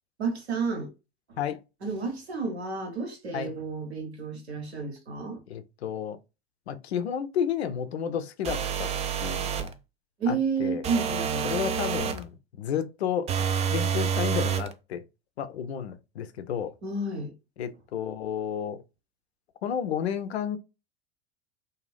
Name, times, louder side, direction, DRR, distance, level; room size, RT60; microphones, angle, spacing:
voice 1, 0.2-0.9 1.3-1.4 1.8-5.4 9.2-9.3 10.2-11.5 16.8-17.3, right 4 dB, 85° right, 1.1 m, -31 dB
voice 2, 5.5-6.2 6.7-8.9 9.2-9.7 10.3-10.8 11.4-12.3 12.6-13.3 13.7-15.0 15.4-16.7 17.6-18.8 19.6-20.6, left 8 dB, 80° left, 0.5 m, -31 dB
sound 1, 8.4-9.7 10.8-12.2 13.3-14.7, right 7 dB, 20° right, 0.3 m, -28 dB
2.5 x 2.3 x 3.3 m
hypercardioid pair, 80°, 32 cm